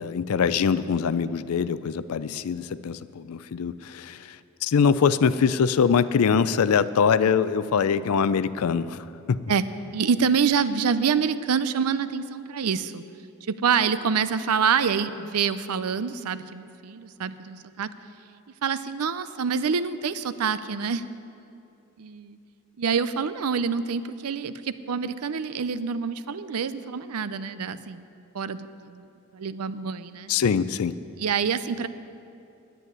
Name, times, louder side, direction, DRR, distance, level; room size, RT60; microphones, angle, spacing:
voice 1, 0.0-9.4 30.3-30.9, left 6 dB, 75° left, 15 dB, 0.4 m, -23 dB
voice 2, 9.9-13.0 13.5-17.9 18.6-21.0 22.0-22.4 22.8-28.0 28.3-29.1 29.3-30.3 31.2-31.9, right 6 dB, 90° right, 14 dB, 0.5 m, -26 dB
9.9 x 9.3 x 9.6 m, 2.6 s
head